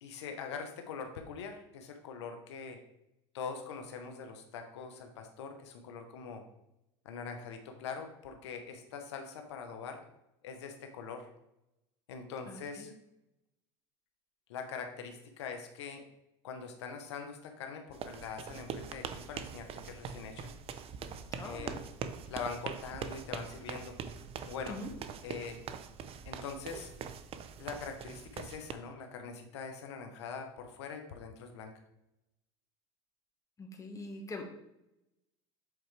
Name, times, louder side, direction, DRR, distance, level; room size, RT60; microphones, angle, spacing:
voice 1, 0.0-2.8 3.3-6.4 7.0-10.0 10.4-11.3 12.1-12.9 14.5-16.0 16.4-20.5 21.4-21.8 22.3-23.9 24.4-24.8 25.2-25.6 26.2-26.9 27.6-31.7, left 5 dB, 90° left, 5 dB, 0.9 m, -43 dB
voice 2, 12.5-12.9 21.4-21.8 24.7-24.9 33.6-34.4, left 2 dB, 25° left, 2 dB, 1.4 m, -43 dB
sound 1, 17.9-28.7, right 7 dB, 45° right, 0.6 m, -43 dB
7.8 x 4.4 x 3.3 m, 0.86 s
supercardioid pair, 95°, 14 cm